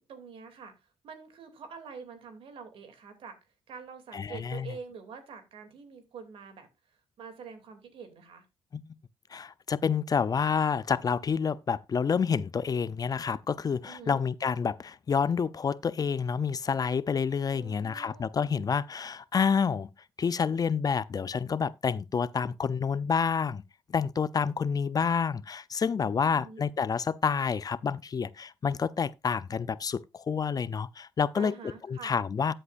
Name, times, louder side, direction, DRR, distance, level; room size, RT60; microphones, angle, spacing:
voice 1, 0.1-0.7 1.0-3.4 3.7-6.7 7.2-8.4 13.8-14.3 17.5-18.2 26.2-26.7 31.3-32.1, right 6 dB, 65° right, 2.8 m, -46 dB
voice 2, 4.1-4.7 8.7-8.8 9.3-19.9 20.2-23.6 23.9-32.5, left 6 dB, 40° left, 0.6 m, -28 dB
13.0 x 7.8 x 2.5 m
supercardioid pair, 55°, 10 cm